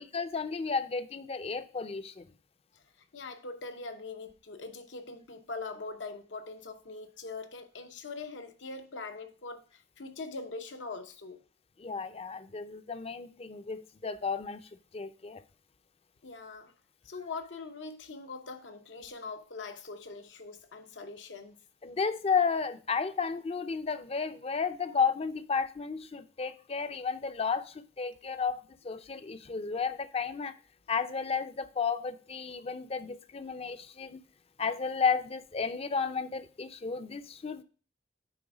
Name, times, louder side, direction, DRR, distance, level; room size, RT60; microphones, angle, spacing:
voice 1, 0.0-2.2 11.8-14.6 14.9-15.4 21.8-30.5 30.9-34.2 34.6-37.6, left 5 dB, 35° left, 0.5 m, -33 dB
voice 2, 3.1-11.4 16.2-16.7 17.0-21.6, left 3 dB, 80° left, 0.9 m, -42 dB
9.3 x 3.4 x 4.8 m
head